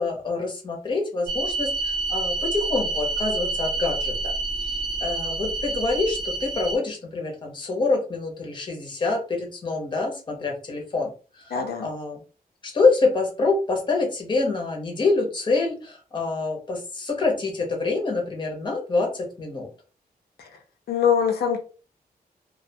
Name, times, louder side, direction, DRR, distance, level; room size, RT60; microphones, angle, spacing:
voice 1, 0.0-11.6 11.8-12.2 12.6-19.7, left 3 dB, 30° left, 1 dB, 0.7 m, -26 dB
sound 1, 1.3-6.8, right 3 dB, 20° right, 0.7 m, -28 dB
voice 2, 11.5-11.9 20.9-21.6, left 7 dB, 80° left, 3 dB, 0.5 m, -22 dB
2.3 x 2.2 x 2.6 m, 0.36 s
wide cardioid pair, 165°, 16 cm